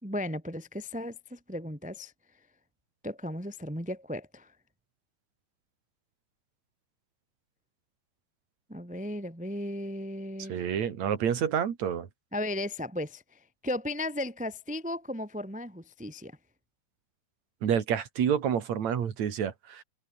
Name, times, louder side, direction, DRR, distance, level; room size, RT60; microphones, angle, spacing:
voice 1, 0.0-2.1 3.0-4.5 8.7-10.5 12.3-16.3, left 1 dB, ahead, 2.7 m, -35 dB
voice 2, 10.5-12.1 17.6-19.8, right 8 dB, 50° right, 2.9 m, -28 dB
omnidirectional pair, 5.2 m